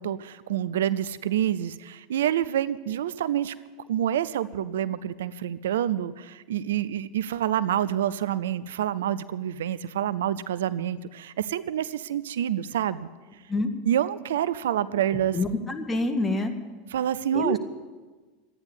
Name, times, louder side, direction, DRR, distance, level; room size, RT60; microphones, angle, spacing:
voice 1, 0.0-3.5 3.9-13.1 13.9-15.4 16.9-17.6, right 10 dB, 75° right, 16 dB, 0.4 m, -27 dB
voice 2, 15.3-16.5 17.3-17.6, left 2 dB, 15° left, 5 dB, 1.8 m, -26 dB
12.5 x 9.6 x 9.7 m, 1.3 s
hypercardioid pair, 85°, 0 cm